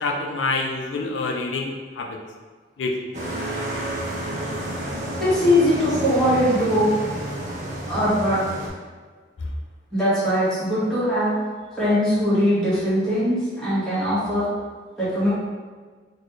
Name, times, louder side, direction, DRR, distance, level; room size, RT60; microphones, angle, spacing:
voice 1, 0.0-2.2 2.8-2.9, left 3 dB, 90° left, 1 dB, 0.4 m, -26 dB
sound 1, 3.1-8.7, right 1 dB, 40° right, 0.7 m, -30 dB
voice 2, 5.2-6.9 7.9-8.4 9.9-11.4 11.8-14.5 15.0-15.3, equal, ahead, -12 dB, 1.3 m, -21 dB
4.2 x 2.3 x 3.1 m, 1.5 s
head